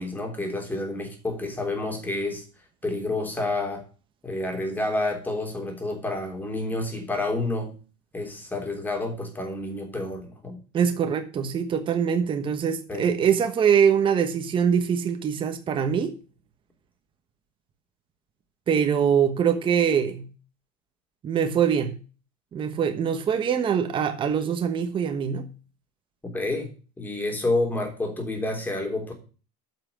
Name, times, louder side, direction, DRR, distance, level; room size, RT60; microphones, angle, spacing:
voice 1, 0.0-2.4 2.8-3.8 4.2-7.8 8.1-10.6 12.9-13.1 26.2-26.7 27.0-29.1, left 2 dB, 10° left, 2 dB, 3.3 m, -29 dB
voice 2, 10.7-16.1 18.7-20.3 21.2-21.9 22.5-25.5, right 7 dB, 25° right, 7 dB, 1.2 m, -23 dB
9.0 x 5.9 x 8.2 m, 0.36 s
cardioid pair, 150°, 19 cm